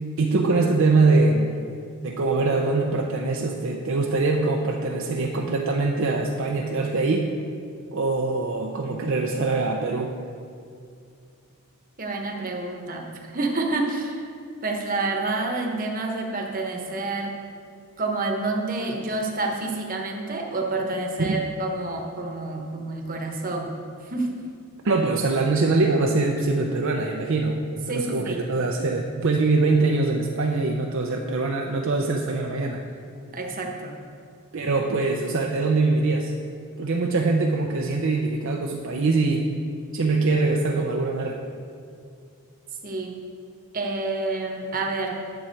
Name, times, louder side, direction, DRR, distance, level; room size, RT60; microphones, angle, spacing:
voice 1, 0.2-1.6 2.0-7.3 7.9-10.2 21.2-21.4 24.8-27.6 27.9-32.8 34.5-36.3 36.8-39.5 39.9-41.4, right 3 dB, 55° right, 1 dB, 0.6 m, -23 dB
voice 2, 12.0-13.0 13.3-14.2 14.6-17.3 18.0-23.7 24.0-24.3 27.9-28.4 33.3-33.9 42.8-43.1 43.7-45.1, right 2 dB, 40° right, 1 dB, 1.1 m, -28 dB
10.5 x 7.3 x 4.6 m, 2.4 s
head